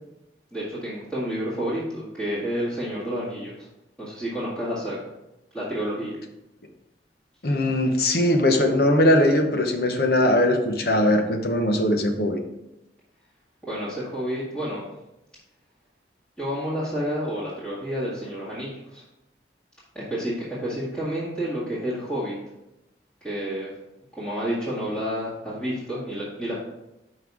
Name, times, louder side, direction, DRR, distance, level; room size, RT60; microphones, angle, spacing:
voice 1, 0.5-3.7 4.0-5.0 5.5-6.2 13.7-14.8 16.4-19.0 19.9-22.4 23.2-23.7 24.2-26.6, equal, 5° left, -12 dB, 1.8 m, -30 dB
voice 2, 7.4-12.4, left 1 dB, 60° left, 4 dB, 0.9 m, -20 dB
5.8 x 5.5 x 4.7 m, 0.91 s
head